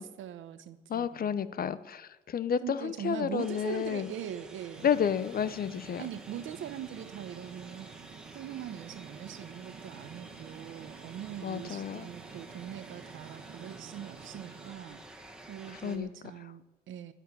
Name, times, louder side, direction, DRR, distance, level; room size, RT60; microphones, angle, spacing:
voice 1, 0.0-1.4 2.6-4.9 6.0-7.9 8.3-17.1, right 10 dB, 80° right, 12 dB, 1.0 m, -42 dB
voice 2, 0.9-4.1 4.8-6.0 11.4-12.1 15.8-16.1, left 8 dB, 50° left, 15 dB, 0.8 m, -31 dB
sound 1, 3.4-16.0, right 1 dB, 5° right, 1.9 m, -50 dB
sound 2, 4.7-14.7, right 8 dB, 50° right, 0.8 m, -51 dB
10.5 x 10.0 x 8.5 m, 1.1 s
cardioid pair, 90°, 20 cm